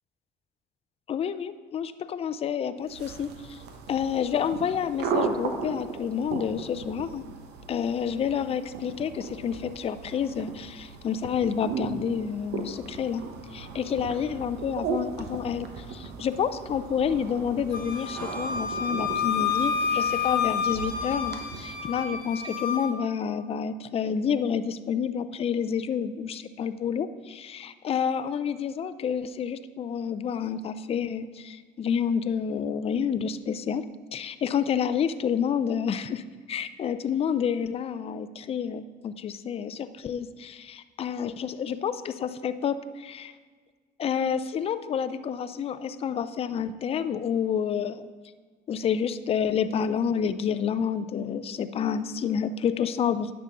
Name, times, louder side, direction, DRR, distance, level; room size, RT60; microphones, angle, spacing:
voice 1, 1.1-3.6 3.9-7.2 7.7-13.2 13.5-33.8 34.1-36.2 36.5-43.3 44.0-48.1 48.7-53.3, left 7 dB, 35° left, 12 dB, 0.4 m, -29 dB
sound 1, 2.9-22.2, right 5 dB, 80° right, 1.0 m, -37 dB
Wind instrument woodwind instrument, 17.7-22.9, left 6 dB, 60° left, 1.2 m, -29 dB
10.0 x 6.8 x 3.8 m, 1.5 s
cardioid pair, 110°, 17 cm